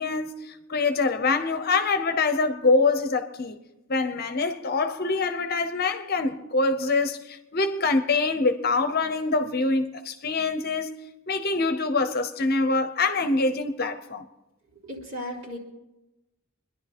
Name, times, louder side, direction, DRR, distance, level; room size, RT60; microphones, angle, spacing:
voice 1, 0.0-3.5 3.9-10.9 11.3-14.2, left 3 dB, 45° left, 0.9 m, -25 dB
voice 2, 14.8-15.6, equal, 60° right, 3.5 m, -35 dB
26.0 x 11.0 x 4.4 m
head